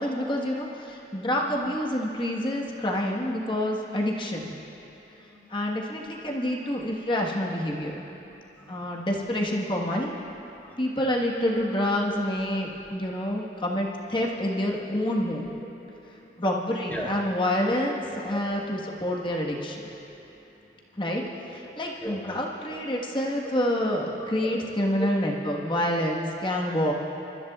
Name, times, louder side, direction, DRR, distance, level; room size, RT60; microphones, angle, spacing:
voice 1, 0.0-4.5 5.5-8.0 8.7-10.2 10.8-15.4 16.4-19.8 21.0-21.2 21.8-26.9, left 1 dB, 30° left, -2 dB, 1.5 m, -27 dB
voice 2, 1.2-1.6 4.4-4.5 4.7-6.0 6.7-6.8 8.2-9.3 10.5-10.9 14.2-14.3 14.8-15.0 15.4-15.5 15.9-16.4 16.9-17.1 18.2-18.6 20.0-20.9 21.5-21.6 22.0-22.3 24.2-24.5 25.0-25.1, right 1 dB, 10° left, -6 dB, 3.4 m, -42 dB
27.5 x 14.0 x 2.4 m, 2.9 s
head